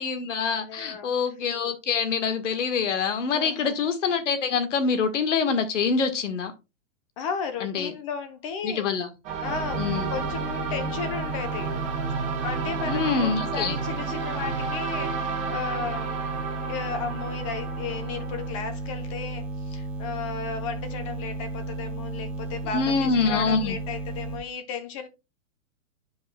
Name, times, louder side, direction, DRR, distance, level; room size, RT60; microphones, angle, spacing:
voice 1, 0.0-6.5 7.6-7.9 8.6-9.1 9.8-10.1 12.8-13.8 22.7-23.8, left 5 dB, 65° left, 1.6 m, -25 dB
voice 2, 0.7-1.1 3.3-3.8 7.2-8.8 9.4-11.7 12.4-16.2 16.7-25.1, left 6 dB, 25° left, 0.9 m, -34 dB
sound 1, 9.2-18.5, right 5 dB, 20° right, 1.5 m, -32 dB
sound 2, 9.4-24.4, right 3 dB, 5° right, 0.8 m, -34 dB
10.0 x 5.5 x 2.3 m
hypercardioid pair, 160°, 39 cm